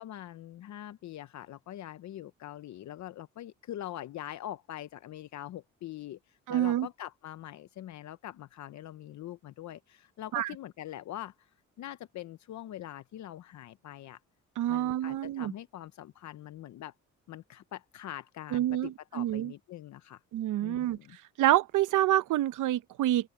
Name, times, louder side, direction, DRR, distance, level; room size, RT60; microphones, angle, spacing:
voice 1, 0.0-11.5 11.8-14.2 14.7-16.9 17.3-20.2 20.6-21.2, left 12 dB, 65° left, 0.8 m, -43 dB
voice 2, 6.5-6.9 10.3-10.5 14.6-15.5 18.5-19.5 20.3-23.3, right 14 dB, 85° right, 0.9 m, -27 dB
open air
cardioid pair, 90°, 30 cm